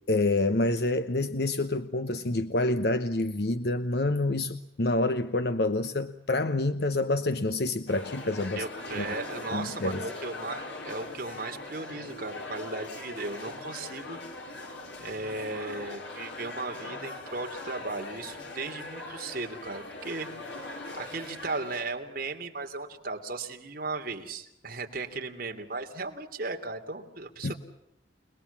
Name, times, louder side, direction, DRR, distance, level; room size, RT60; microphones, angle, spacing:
voice 1, 0.1-8.6 8.9-9.0 9.5-10.0 27.4-27.5, left 2 dB, 60° left, 10 dB, 1.0 m, -27 dB
sound 1, 7.9-21.8, left 2 dB, 90° left, 5.4 m, -41 dB
voice 2, 8.5-14.2 14.5-14.7 15.0-27.5, right 3 dB, 50° right, 4 dB, 3.0 m, -36 dB
29.5 x 20.5 x 7.3 m, 0.79 s
head